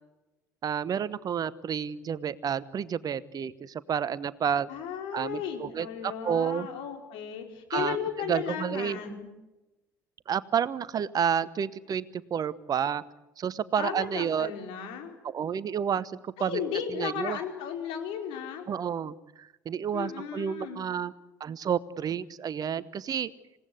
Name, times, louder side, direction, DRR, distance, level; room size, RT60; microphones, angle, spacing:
voice 1, 0.6-4.7 5.1-6.7 7.7-8.0 8.3-9.2 10.3-13.0 13.4-14.5 15.3-16.6 16.9-17.4 18.7-21.1 21.4-23.3, right 8 dB, 40° right, 17 dB, 1.0 m, -30 dB
voice 2, 4.7-9.3 13.8-15.2 16.4-18.7 19.9-20.9, left 8 dB, 60° left, 4 dB, 4.8 m, -35 dB
27.5 x 17.5 x 8.2 m, 1.0 s
figure-of-eight pair, 55°, 10 cm